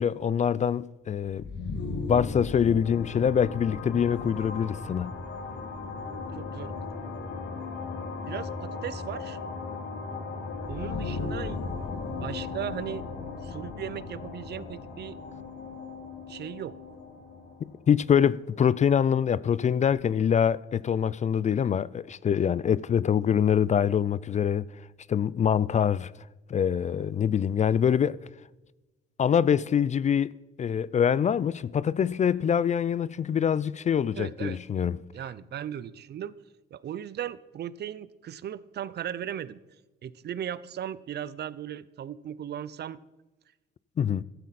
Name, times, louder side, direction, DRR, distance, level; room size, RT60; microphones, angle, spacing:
voice 1, 0.0-1.5 2.1-5.2 17.9-24.7 25.1-26.1 26.5-28.2 29.2-30.3 30.6-35.0 44.0-44.2, left 8 dB, 35° left, 0.4 m, -24 dB
sound 1, 1.3-18.9, left 4 dB, 60° left, 2.0 m, -37 dB
voice 2, 6.1-6.9 8.2-9.4 10.7-11.6 12.1-13.0 13.4-15.2 16.3-16.7 34.1-34.6 35.1-36.3 36.7-39.6 40.0-43.0, right 10 dB, 55° right, 0.6 m, -37 dB
15.0 x 12.5 x 4.2 m
cardioid pair, 90°, 20 cm